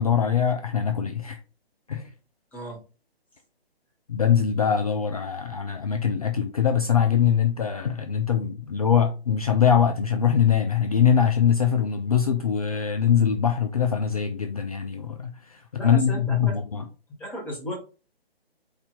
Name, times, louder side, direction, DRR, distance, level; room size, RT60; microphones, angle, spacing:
voice 1, 0.0-1.4 1.9-2.1 4.1-16.8, left 8 dB, 35° left, 0.4 m, -23 dB
voice 2, 15.8-16.5 17.2-17.7, left 1 dB, 5° left, 1.1 m, -34 dB
4.7 x 2.7 x 3.7 m
figure-of-eight pair, 140°, 32 cm